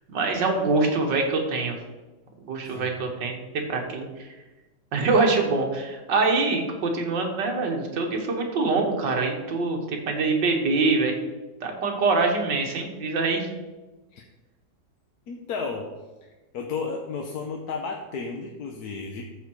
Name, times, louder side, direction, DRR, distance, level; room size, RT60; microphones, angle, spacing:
voice 1, 0.1-1.8 2.5-3.4 3.7-4.3 4.9-11.2 11.6-13.5, right 3 dB, 70° right, 2 dB, 2.0 m, -24 dB
voice 2, 2.6-3.0 14.1-14.2 15.3-15.9 16.5-19.2, left 4 dB, 60° left, 1 dB, 1.3 m, -33 dB
14.0 x 4.7 x 4.7 m, 1.1 s
omnidirectional pair, 2.0 m